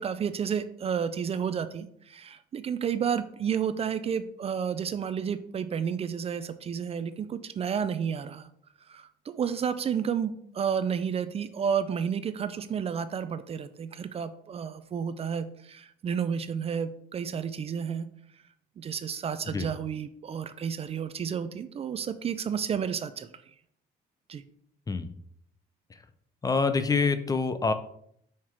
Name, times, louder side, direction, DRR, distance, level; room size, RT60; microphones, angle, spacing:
voice 1, 0.0-8.5 8.9-18.1 18.8-23.3 24.3-24.4, right 7 dB, 35° right, 12 dB, 0.4 m, -31 dB
voice 2, 26.4-27.7, left 4 dB, 20° left, 11 dB, 0.5 m, -26 dB
5.7 x 4.6 x 4.6 m, 0.67 s
cardioid pair, 110°, 17 cm